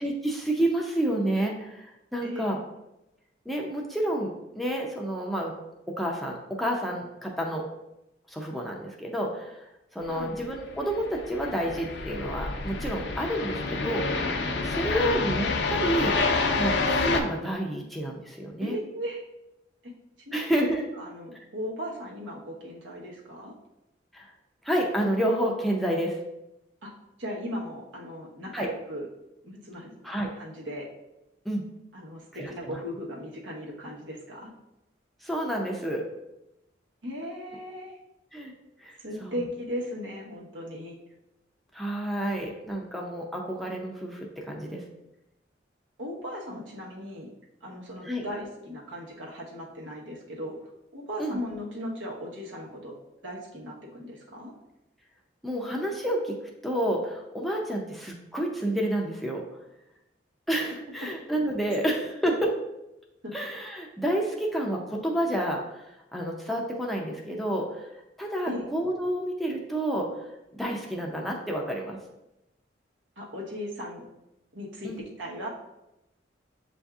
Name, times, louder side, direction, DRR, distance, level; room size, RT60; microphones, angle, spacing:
voice 1, 0.0-2.6 3.5-5.5 5.9-7.6 8.3-14.1 14.6-16.2 16.6-18.8 20.3-20.8 24.1-24.3 24.6-26.2 28.5-28.7 30.0-30.3 31.5-31.6 32.3-32.8 35.2-36.0 38.3-38.5 38.8-39.4 41.7-44.8 48.0-48.2 51.2-51.4 55.4-59.4 60.5-62.5 63.3-65.8 66.1-67.9 68.2-70.1 70.5-72.0 74.8-75.0, right 1 dB, ahead, -1 dB, 0.4 m, -29 dB
voice 2, 2.2-2.6 10.1-10.3 14.8-15.1 18.6-19.2 19.8-19.9 20.3-20.5 21.0-23.5 26.8-26.9 27.2-29.1 29.4-29.9 30.4-30.9 31.9-34.5 37.0-38.0 39.0-41.0 46.0-47.3 47.6-50.6 50.9-52.9 53.2-54.5 63.2-63.3 68.5-68.7 73.2-74.0 74.5-75.5, equal, 85° right, -3 dB, 1.1 m, -37 dB
sound 1, 10.5-17.2, left 3 dB, 65° left, 0.5 m, -28 dB
7.6 x 2.6 x 2.3 m, 0.92 s
head